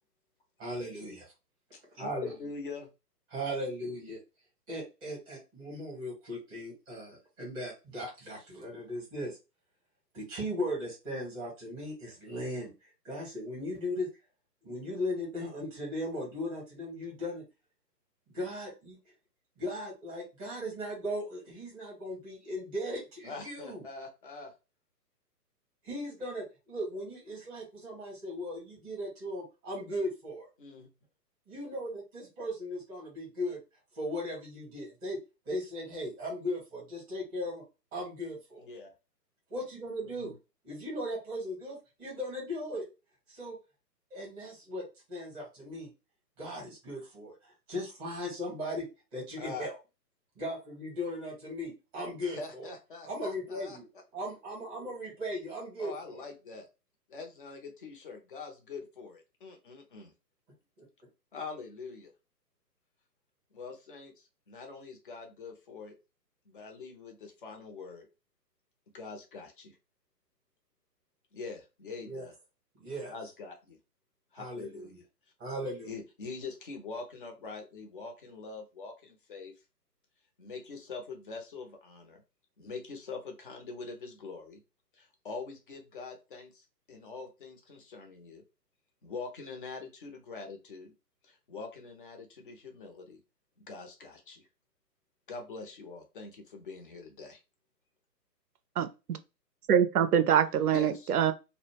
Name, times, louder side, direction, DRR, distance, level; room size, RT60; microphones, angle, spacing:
voice 1, 0.6-1.3 2.0-2.3 3.3-4.2 4.7-9.4 10.1-12.7 13.0-14.1 14.6-17.4 18.3-19.0 19.6-23.8 25.8-30.5 31.5-33.6 33.9-35.2 35.5-37.6 37.9-38.6 39.5-40.3 40.6-42.9 43.3-43.6 44.1-44.8 45.1-45.9 46.4-49.8 50.4-52.7 53.0-53.9 54.1-56.2 60.8-60.9 72.0-72.2 72.8-73.1 74.3-75.0 75.4-75.9, equal, 10° right, 0.7 m, -37 dB
voice 2, 1.7-2.9 23.2-24.5 30.6-30.9 38.6-38.9 40.0-40.4 49.4-49.7 52.2-53.8 55.8-56.7 57.1-60.1 61.3-62.1 63.5-65.9 66.5-68.1 68.9-69.8 71.3-72.3 73.1-73.8 74.3-74.9 75.8-79.5 80.4-82.2 82.6-84.6 84.9-88.4 89.0-90.9 91.2-93.2 93.6-94.4 95.3-97.4 100.7-101.2, left 4 dB, 35° left, 0.5 m, -44 dB
voice 3, 98.8-99.2 99.7-101.3, right 8 dB, 65° right, 0.5 m, -25 dB
2.1 x 2.0 x 3.2 m
figure-of-eight pair, 135°, 50 cm